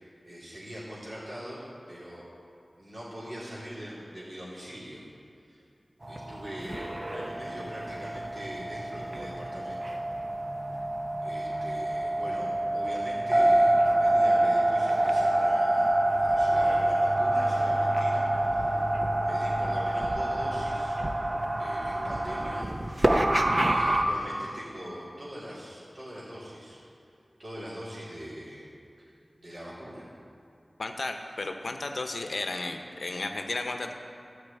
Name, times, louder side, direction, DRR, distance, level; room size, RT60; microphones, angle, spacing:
voice 1, 0.0-2.2 2.8-5.0 5.4-5.6 6.1-10.0 11.2-12.5 12.7-20.9 21.6-22.6 23.6-26.8 27.4-28.6 29.4-30.1, equal, 50° right, -9 dB, 3.0 m, -42 dB
sound 1, 6.0-24.0, right 1 dB, 35° right, 0.7 m, -26 dB
voice 2, 30.8-33.9, left 2 dB, 70° left, 5 dB, 0.8 m, -33 dB
12.5 x 4.9 x 8.3 m, 2.5 s
wide cardioid pair, 75°, 0 cm